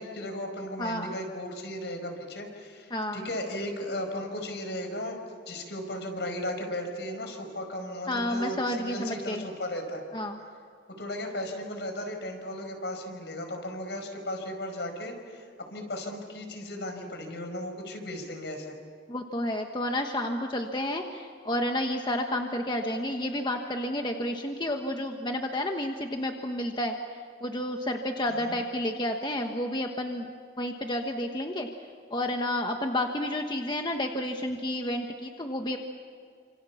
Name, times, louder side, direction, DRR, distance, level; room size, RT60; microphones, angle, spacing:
voice 1, 0.0-10.0 10.9-18.8 28.3-28.6, left 1 dB, 70° left, 5 dB, 5.0 m, -36 dB
voice 2, 0.8-1.1 2.9-3.2 8.1-9.4 10.1-10.4 19.1-26.9 27.4-30.3 30.6-31.7 32.1-35.8, left 1 dB, 25° left, 4 dB, 1.2 m, -30 dB
29.0 x 27.0 x 7.2 m, 2.2 s
head